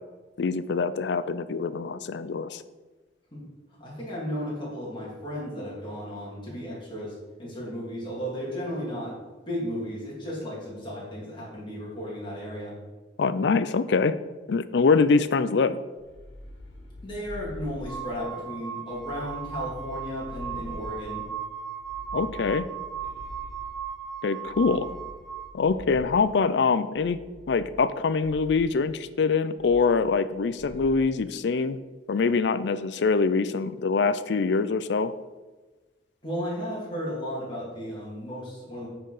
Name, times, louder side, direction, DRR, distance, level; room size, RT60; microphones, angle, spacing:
voice 1, 0.4-2.6 13.2-14.2 14.5-15.8 22.1-22.7 24.2-24.9 25.5-27.2 27.5-31.8 32.1-35.1, left 4 dB, 70° left, 14 dB, 0.4 m, -24 dB
voice 2, 3.8-7.1 7.4-9.1 9.5-12.8 17.0-21.2 36.2-38.9, equal, 25° left, -6 dB, 2.6 m, -34 dB
sound 1, 16.0-18.4 18.9-21.3 21.8-24.0 24.4-26.3 27.0-27.9 28.2-28.7 29.6-30.3 30.6-31.0, left 1 dB, 85° left, 1.5 m, -45 dB
sound 2, 17.9-25.5, right 8 dB, ahead, 0.4 m, -37 dB
8.9 x 4.6 x 4.9 m, 1.2 s
head